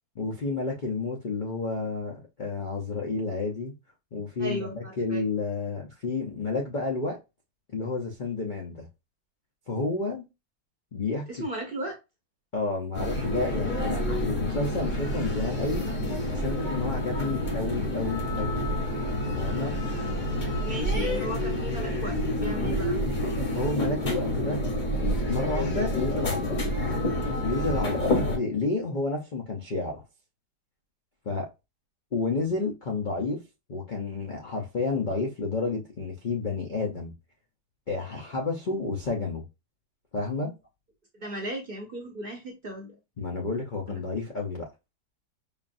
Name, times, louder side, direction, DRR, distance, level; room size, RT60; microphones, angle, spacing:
voice 1, 0.2-3.7 4.1-7.2 7.7-8.9 9.7-10.2 10.9-11.4 12.5-15.9 16.3-18.7 19.4-19.8 23.5-24.6 25.0-26.6 27.4-30.0 31.3-31.5 32.1-33.4 33.7-37.1 37.9-39.4 40.1-40.5 43.2-44.7, left 3 dB, 55° left, 0.5 m, -30 dB
voice 2, 4.4-5.2 11.3-11.9 20.6-23.0 41.1-43.0 43.9-44.0, right 1 dB, 45° right, 0.8 m, -36 dB
sound 1, 12.9-28.4, left 1 dB, 35° left, 0.9 m, -28 dB
5.1 x 2.5 x 2.5 m
omnidirectional pair, 1.8 m